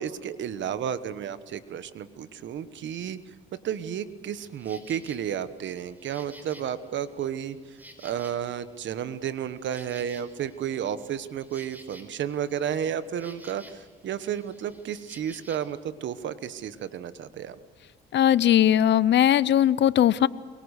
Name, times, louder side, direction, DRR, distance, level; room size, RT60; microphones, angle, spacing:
voice 1, 0.0-3.2 3.5-7.8 8.0-17.5, right 9 dB, 70° right, 13 dB, 1.2 m, -32 dB
Insect, 4.3-5.2 5.7-8.7 9.1-13.9 14.2-15.7, equal, 10° right, 4.2 m, -52 dB
voice 2, 18.1-20.3, left 11 dB, 65° left, 19 dB, 0.7 m, -19 dB
23.5 x 23.5 x 6.6 m, 1.5 s
cardioid pair, 90°, 20 cm